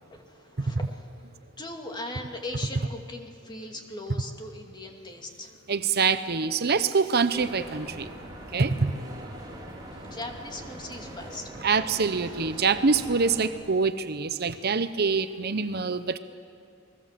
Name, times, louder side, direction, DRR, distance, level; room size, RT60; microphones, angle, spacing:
voice 1, 0.0-1.1 1.6-5.6 9.9-11.5 14.5-14.6, left 2 dB, 20° left, 2 dB, 2.5 m, -39 dB
voice 2, 5.7-8.1 8.5-8.9 11.6-16.2, right 4 dB, 50° right, 11 dB, 0.8 m, -25 dB
sound 1, 7.3-13.5, right 1 dB, 20° right, 4.4 m, -42 dB
29.5 x 20.5 x 7.5 m, 2.4 s
head